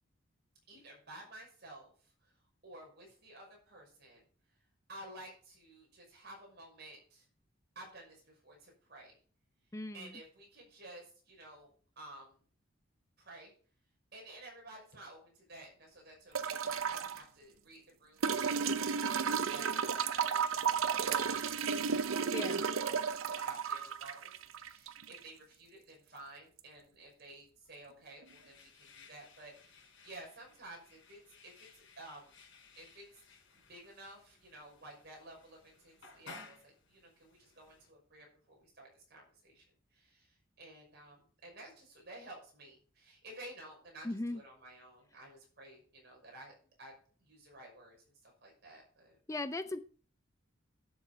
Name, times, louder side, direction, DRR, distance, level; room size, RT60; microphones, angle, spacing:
voice 1, 0.7-2.3 2.6-4.3 4.9-7.3 7.7-9.2 9.9-12.4 13.2-13.5 14.1-32.4 32.8-33.1 33.5-39.6 39.9-46.9 47.2-49.2, right 1 dB, 55° right, -1 dB, 5.9 m, -53 dB
voice 2, 9.7-10.1 22.3-22.6 44.0-44.4 49.3-49.8, left 2 dB, 15° left, 10 dB, 0.5 m, -38 dB
sound 1, 16.3-17.2 18.2-25.2 26.6-26.7, right 6 dB, 90° right, 0.7 m, -33 dB
sound 2, 28.2-37.9, left 4 dB, 70° left, 4.1 m, -58 dB
11.5 x 7.2 x 5.0 m, 0.43 s
head